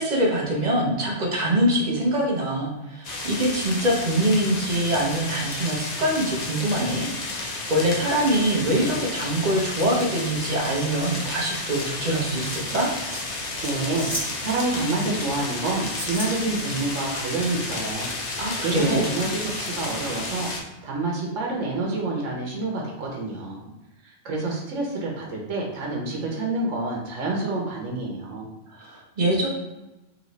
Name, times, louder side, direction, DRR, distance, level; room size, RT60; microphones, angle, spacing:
voice 1, 0.0-12.9 18.4-19.0 28.7-29.5, right 1 dB, 40° right, -2 dB, 0.8 m, -24 dB
sound 1, 3.0-20.6, left 2 dB, 45° left, 0.6 m, -32 dB
sound 2, 12.5-13.2 14.0-14.3 14.6-15.3 15.9-16.3 16.7-17.4 17.8-17.9, equal, 20° left, 1.5 m, -34 dB
voice 2, 13.6-18.1 18.6-20.5 20.8-23.6 24.0-28.5, right 2 dB, 90° right, -1 dB, 1.1 m, -28 dB
3.8 x 3.1 x 3.1 m, 1.0 s
omnidirectional pair, 1.3 m